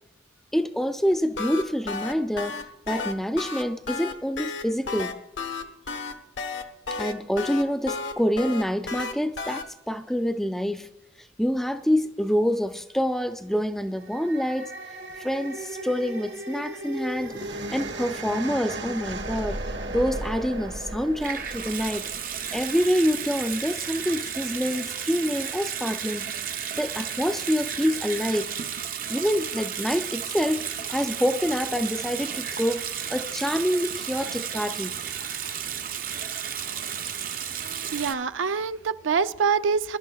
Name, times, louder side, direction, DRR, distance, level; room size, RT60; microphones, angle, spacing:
voice 1, 0.5-5.2 6.9-10.9 11.4-14.7 15.2-26.3 26.8-28.5 29.1-35.0, equal, ahead, 0.4 m, -27 dB
sound 1, 1.1-9.6, left 4 dB, 80° left, 1.0 m, -32 dB
sound 2, 13.8-23.1, right 2 dB, 70° right, 1.6 m, -36 dB
Water tap faucet / Sink (filling or washing) / Bathtub (filling or washing), 21.2-38.1, right 8 dB, 45° right, 0.6 m, -33 dB
voice 2, 37.9-40.0, right 5 dB, 90° right, 0.4 m, -25 dB
22.0 x 11.5 x 2.3 m
head